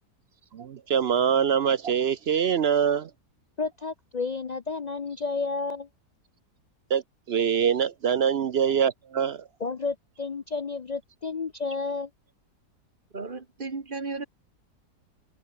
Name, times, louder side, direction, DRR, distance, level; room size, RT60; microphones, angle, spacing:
voice 1, 0.5-3.1 6.9-7.0 7.3-9.4, right 8 dB, 60° right, 0.6 m, -24 dB
voice 2, 3.6-5.9 9.6-12.1, left 4 dB, 70° left, 0.4 m, -31 dB
voice 3, 13.1-14.2, right 4 dB, 30° right, 1.7 m, -34 dB
omnidirectional pair, 1.8 m